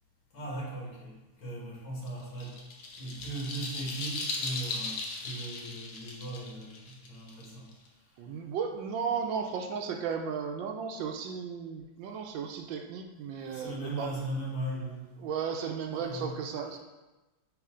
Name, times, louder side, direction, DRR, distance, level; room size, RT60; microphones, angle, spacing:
voice 1, 0.3-2.6 3.0-7.7 13.4-15.1 15.9-16.3, right 1 dB, 75° left, -5 dB, 2.6 m, -38 dB
sound 1, 2.1-7.9, left 3 dB, 60° left, 1.2 m, -38 dB
voice 2, 8.2-14.2 15.2-16.8, right 6 dB, 75° right, 4 dB, 1.2 m, -35 dB
9.3 x 3.1 x 3.7 m, 1.1 s
omnidirectional pair, 2.3 m